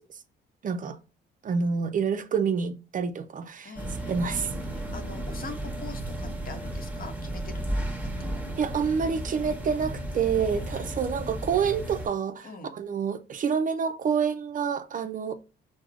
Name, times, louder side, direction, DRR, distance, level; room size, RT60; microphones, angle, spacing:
voice 1, 0.6-1.0 1.4-3.7 4.1-4.5 8.6-15.3, right 6 dB, 45° right, 0.4 m, -28 dB
voice 2, 3.6-4.2 4.7-8.1 10.4-11.0 12.4-12.8, left 3 dB, 45° left, 0.8 m, -43 dB
sound 1, 3.8-12.1, right 1 dB, 10° right, 1.0 m, -34 dB
4.5 x 2.0 x 2.3 m
cardioid pair, 90°, 20 cm